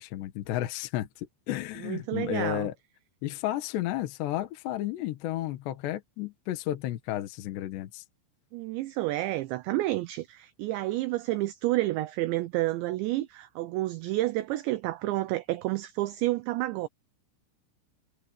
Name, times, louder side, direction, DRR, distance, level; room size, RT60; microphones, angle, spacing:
voice 1, 0.0-2.7 3.2-8.0, left 13 dB, 70° left, 3.2 m, -32 dB
voice 2, 1.8-2.7 8.5-16.9, right 17 dB, 80° right, 2.7 m, -30 dB
omnidirectional pair, 5.9 m